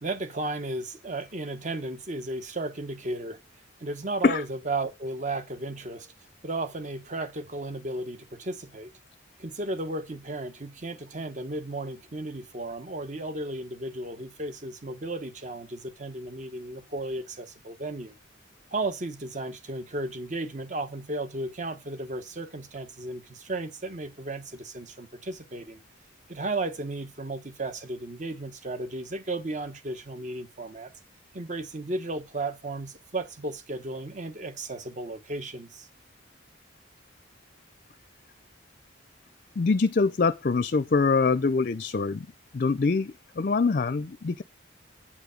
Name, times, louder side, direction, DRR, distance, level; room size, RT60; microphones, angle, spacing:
voice 1, 0.0-3.4 3.8-6.1 6.4-8.9 9.4-18.1 18.7-25.8 26.3-30.9 31.3-35.9, right 2 dB, 40° right, 1.0 m, -34 dB
voice 2, 39.6-42.3 42.5-44.4, left 4 dB, 45° left, 0.5 m, -24 dB
8.5 x 4.9 x 5.1 m
head